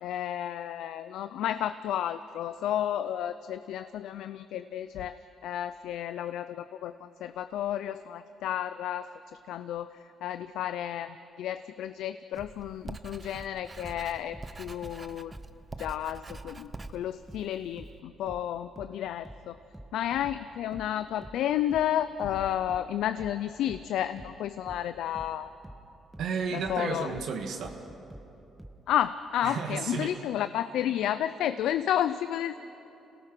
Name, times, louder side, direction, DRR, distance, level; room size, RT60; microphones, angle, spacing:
voice 1, 0.0-9.1 9.5-9.9 10.2-15.3 15.8-19.6 19.9-25.5 26.5-27.1 28.9-32.6, left 11 dB, 85° left, 12 dB, 0.5 m, -32 dB
Writing, 12.3-18.0, right 3 dB, 25° right, 0.7 m, -46 dB
sound 1, 12.4-15.6 15.8-28.8, right 1 dB, 10° right, 1.6 m, -48 dB
voice 2, 26.2-27.8 29.4-30.2, right 5 dB, 75° right, 3 dB, 1.7 m, -33 dB
27.0 x 18.0 x 6.1 m, 2.9 s
cardioid pair, 90°, 0 cm